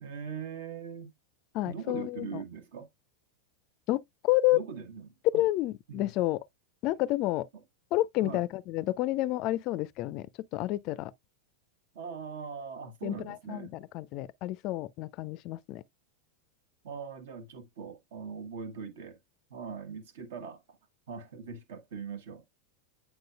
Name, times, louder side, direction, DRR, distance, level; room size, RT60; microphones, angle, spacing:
voice 1, 0.0-1.1 1.7-2.9 4.5-5.5 5.9-6.1 8.2-8.4 11.9-13.7 16.8-19.2 19.5-20.6 21.1-22.4, right 6 dB, 55° right, 1.2 m, -41 dB
voice 2, 1.5-2.4 3.9-4.6 5.3-6.4 6.8-7.5 7.9-10.3 10.5-11.1 13.0-15.8, left 16 dB, 40° left, 0.4 m, -30 dB
9.1 x 4.6 x 2.4 m
figure-of-eight pair, 90°, 0 cm